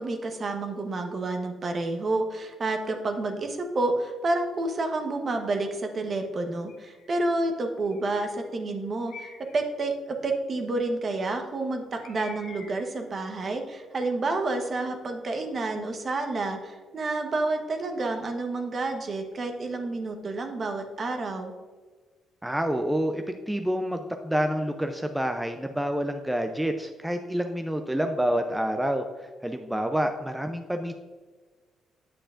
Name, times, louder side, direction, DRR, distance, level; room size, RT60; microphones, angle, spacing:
voice 1, 0.0-21.5, right 2 dB, 45° right, 5 dB, 1.1 m, -29 dB
Bird, 6.7-7.1 7.9-8.4 9.1-9.7 12.0-13.0, left 5 dB, 90° left, 2.1 m, -47 dB
voice 2, 22.4-30.9, equal, 5° right, 5 dB, 0.5 m, -28 dB
8.7 x 7.6 x 2.5 m, 1.4 s
cardioid pair, 90°, 0 cm